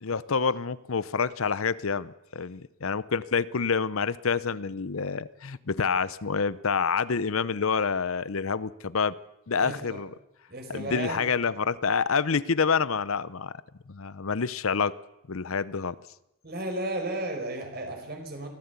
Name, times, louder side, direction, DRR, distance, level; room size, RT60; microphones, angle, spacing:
voice 1, 0.0-9.2 9.5-10.1 10.7-13.5 13.9-15.0 15.3-16.0, left 5 dB, 75° left, 17 dB, 0.7 m, -27 dB
voice 2, 9.6-10.0 10.5-11.2 16.4-18.5, right 1 dB, 45° right, 4 dB, 5.0 m, -34 dB
24.0 x 15.0 x 8.3 m, 0.88 s
head